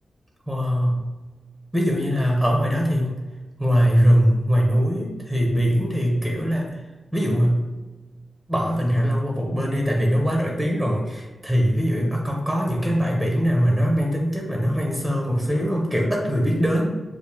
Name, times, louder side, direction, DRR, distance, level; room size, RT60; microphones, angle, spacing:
voice 1, 0.5-1.0 1.7-3.2 3.6-6.8 7.1-7.7 8.5-16.8, equal, ahead, -1 dB, 0.7 m, -21 dB
6.7 x 2.4 x 2.7 m, 1.2 s
wide cardioid pair, 125°, 0 cm